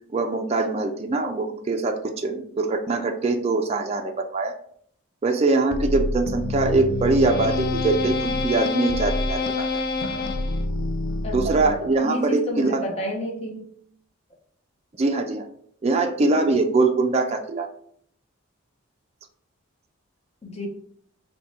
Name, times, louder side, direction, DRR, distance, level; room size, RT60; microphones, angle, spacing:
voice 1, 0.1-4.5 5.2-9.7 11.3-12.8 15.0-15.4 15.8-17.7, right 3 dB, 30° right, 4 dB, 0.3 m, -23 dB
sound 1, 5.7-12.0, left 2 dB, 45° left, 0.4 m, -26 dB
voice 2, 11.2-13.7 20.4-20.7, left 1 dB, 30° left, 2 dB, 0.7 m, -31 dB
4.5 x 2.2 x 4.1 m, 0.64 s
head